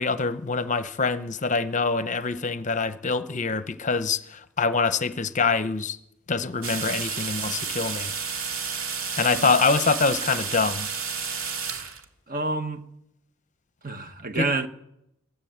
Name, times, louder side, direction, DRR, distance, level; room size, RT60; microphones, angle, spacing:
voice 1, 0.0-6.0 6.3-8.1 9.2-10.9 14.4-14.5, left 4 dB, 35° left, 0.7 m, -25 dB
sound 1, 6.6-12.0, right 6 dB, 75° right, 2.3 m, -31 dB
voice 2, 12.3-12.8 13.8-14.7, right 3 dB, 40° right, 1.4 m, -28 dB
22.5 x 15.0 x 8.0 m
head